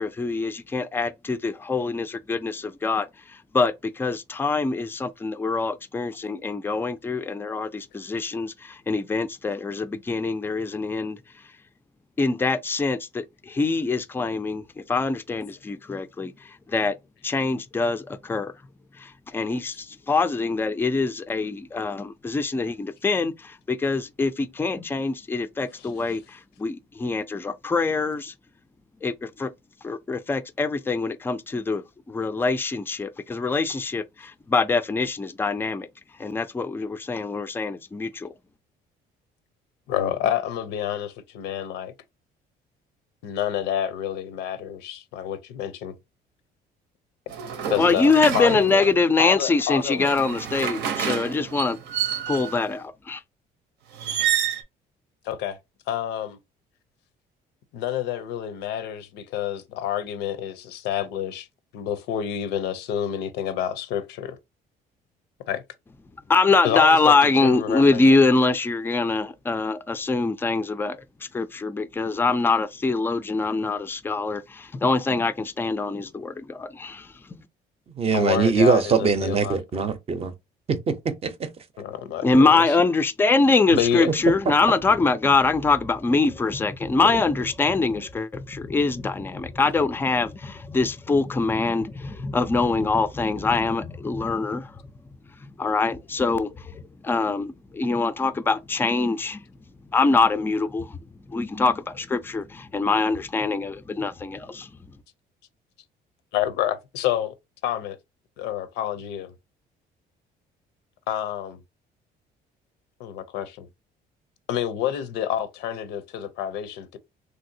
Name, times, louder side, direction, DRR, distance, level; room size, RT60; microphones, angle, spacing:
voice 1, 0.0-11.2 12.2-16.9 17.2-18.5 19.0-28.3 29.0-29.5 29.8-35.9 36.2-38.3 47.7-51.8 52.3-53.2 66.3-77.1 82.2-94.8 95.4-99.4 99.9-101.0 101.3-104.7, left 3 dB, 15° left, 0.3 m, -24 dB
voice 2, 39.9-41.9 43.2-45.9 47.7-48.8 49.2-50.1 55.2-55.6 55.9-56.4 57.7-61.5 61.7-64.4 65.5-65.6 66.6-67.1 67.4-68.0 78.1-79.8 81.8-82.5 83.7-84.1 106.3-107.3 107.6-108.0 108.4-109.3 111.1-111.6 113.0-113.7 114.5-117.0, left 10 dB, 90° left, 0.5 m, -28 dB
sound 1, 47.3-49.0 49.8-52.7 53.9-54.6, right 9 dB, 80° right, 0.7 m, -29 dB
voice 3, 78.0-80.3 80.7-81.5, right 5 dB, 35° right, 0.6 m, -22 dB
3.2 x 2.6 x 2.6 m
cardioid pair, 110°, 17 cm